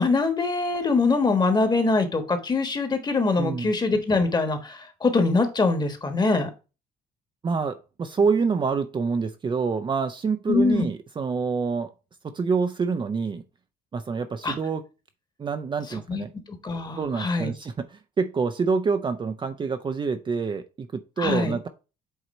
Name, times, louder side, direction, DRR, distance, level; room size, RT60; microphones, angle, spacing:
voice 1, 0.0-6.5 10.5-10.9 14.4-14.5 16.1-16.2 16.6-17.5 21.2-21.5, left 3 dB, 25° left, 7 dB, 1.4 m, -23 dB
voice 2, 3.3-3.7 7.4-11.9 12.2-13.4 13.9-14.8 15.4-16.3 17.0-21.7, right 5 dB, 30° right, 7 dB, 0.6 m, -27 dB
8.0 x 2.9 x 4.2 m, 0.30 s
cardioid pair, 110°, 17 cm